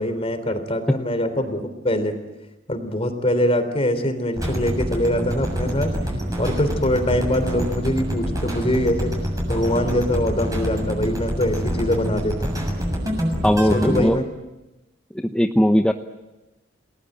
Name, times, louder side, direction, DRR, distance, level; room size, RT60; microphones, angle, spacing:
voice 1, 0.0-2.2 2.7-5.9 6.4-9.1 9.5-12.5 13.7-14.2, left 1 dB, 30° left, 9 dB, 3.5 m, -23 dB
sound 1, 4.3-14.0, equal, 20° right, 7.1 m, -26 dB
voice 2, 13.4-14.2 15.1-15.9, equal, 5° left, 5 dB, 0.8 m, -19 dB
29.5 x 19.0 x 9.2 m, 1.0 s
head